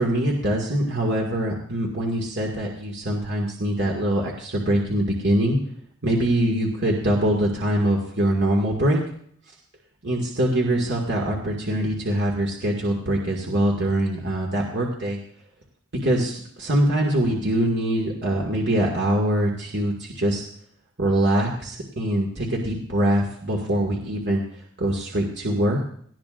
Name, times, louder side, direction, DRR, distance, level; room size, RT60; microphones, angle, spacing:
voice 1, 0.0-5.6 6.0-9.0 10.0-15.2 16.0-20.4 21.0-24.4 24.8-25.8, right 1 dB, 55° right, -1 dB, 2.1 m, -23 dB
19.0 x 15.0 x 2.6 m, 0.62 s
head